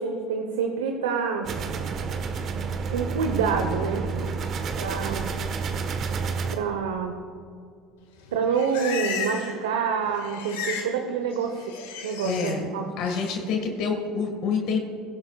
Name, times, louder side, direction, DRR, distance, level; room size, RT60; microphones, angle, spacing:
voice 1, 0.0-1.5 2.9-4.1 4.8-5.3 6.5-7.2 8.3-11.8 12.0-12.9, right 6 dB, 85° right, 4 dB, 1.0 m, -27 dB
sound 1, 1.4-6.5, right 5 dB, 50° right, 1.3 m, -30 dB
Livestock farm animals working animals, 8.2-9.6 9.9-10.9 11.2-12.5 13.0-13.4, left 6 dB, 80° left, 1.8 m, -34 dB
voice 2, 12.2-12.7 13.0-14.8, left 5 dB, 65° left, 3 dB, 1.8 m, -27 dB
22.5 x 11.5 x 2.4 m, 2.3 s
hypercardioid pair, 75°, 0 cm